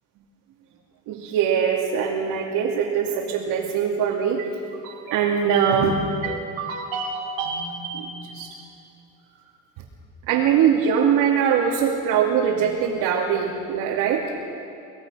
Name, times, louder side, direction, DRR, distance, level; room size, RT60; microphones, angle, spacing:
voice 1, 1.1-8.5 10.2-14.3, right 7 dB, 80° right, -2 dB, 2.7 m, -23 dB
24.0 x 19.5 x 6.4 m, 2.7 s
cardioid pair, 115°, 32 cm